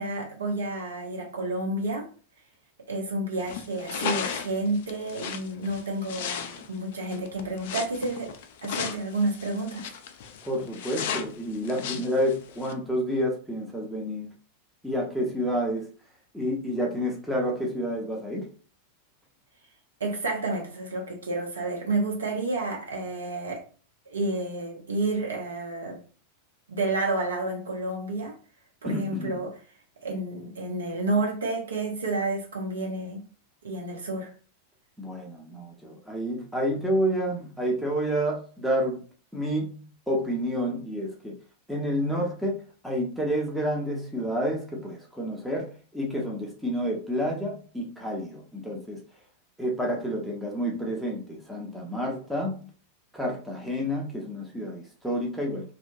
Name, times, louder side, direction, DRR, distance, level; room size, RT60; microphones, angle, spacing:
voice 1, 0.0-2.1 2.9-8.3 8.6-9.9 20.0-23.6 24.1-26.0 26.7-28.3 28.8-29.5 30.0-33.2 33.6-34.3, right 2 dB, 70° right, 0.8 m, -30 dB
sound 1, 3.4-12.7, left 7 dB, 55° left, 0.3 m, -35 dB
voice 2, 10.5-14.3 14.8-15.9 16.3-18.5 28.8-29.4 35.0-39.0 39.3-41.3 41.7-42.6 42.8-49.0 49.6-52.7 53.1-55.7, equal, ahead, 0.6 m, -29 dB
2.7 x 2.1 x 2.6 m
figure-of-eight pair, 90°, 0 cm